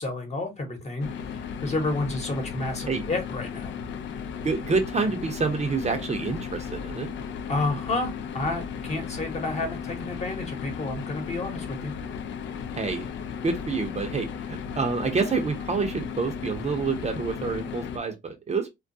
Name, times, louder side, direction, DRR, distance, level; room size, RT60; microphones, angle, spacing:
voice 1, 0.0-3.7 7.5-11.9, left 2 dB, 35° left, 1.0 m, -30 dB
sound 1, 1.0-18.0, left 7 dB, 70° left, 0.5 m, -35 dB
voice 2, 4.4-7.1 12.8-13.1 13.4-18.7, right 4 dB, 35° right, 0.6 m, -28 dB
2.3 x 2.2 x 2.6 m
cardioid pair, 90°, 20 cm